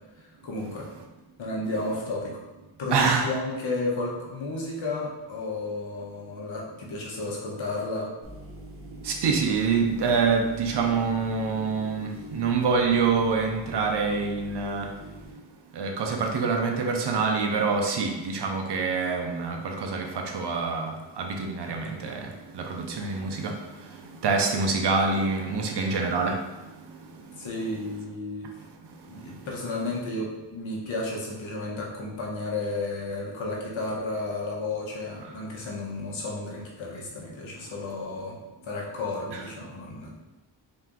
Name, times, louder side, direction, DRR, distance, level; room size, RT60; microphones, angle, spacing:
voice 1, 0.2-0.9 1.4-2.4 2.8-8.1 27.4-28.5 29.0-38.4 38.6-40.1, left 2 dB, 75° left, -3 dB, 1.2 m, -32 dB
voice 2, 2.9-3.3 9.0-14.9 15.7-23.6 24.2-26.4 39.3-39.4, right 4 dB, 60° right, 3 dB, 0.8 m, -26 dB
sound 1, 8.2-15.3, right 1 dB, 30° right, 1.0 m, -44 dB
4.1 x 2.7 x 3.7 m, 1.1 s
cardioid pair, 70°, 47 cm